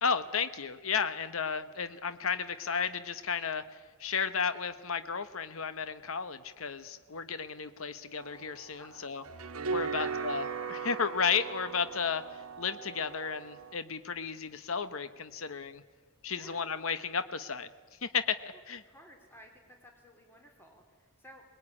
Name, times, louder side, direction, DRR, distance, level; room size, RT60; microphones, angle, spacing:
voice 1, 0.0-3.6 4.0-9.2 9.7-10.4 10.7-12.2 12.6-15.8 16.2-17.7 18.0-18.8, left 6 dB, 70° left, 12 dB, 1.0 m, -33 dB
sound 1, 8.2-13.8, right 5 dB, 90° right, 1.1 m, -39 dB
voice 2, 9.7-10.3 16.3-16.6 18.9-21.4, equal, 10° left, 2 dB, 3.5 m, -53 dB
22.0 x 21.0 x 9.8 m, 1.5 s
head